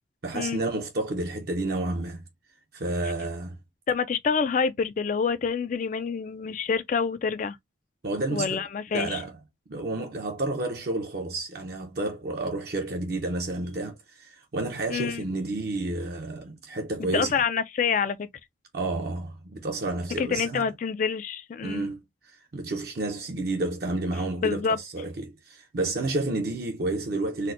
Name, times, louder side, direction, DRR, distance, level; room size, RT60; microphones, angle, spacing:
voice 1, 0.2-2.2 2.7-3.6 8.0-8.6 8.9-9.4 9.7-17.4 18.7-20.7 21.6-27.5, right 2 dB, 55° right, 0.6 m, -30 dB
voice 2, 3.9-7.6 8.3-9.2 14.9-15.2 17.1-18.3 20.2-21.9 24.4-24.8, left 6 dB, 40° left, 0.3 m, -27 dB
4.2 x 2.1 x 2.5 m
head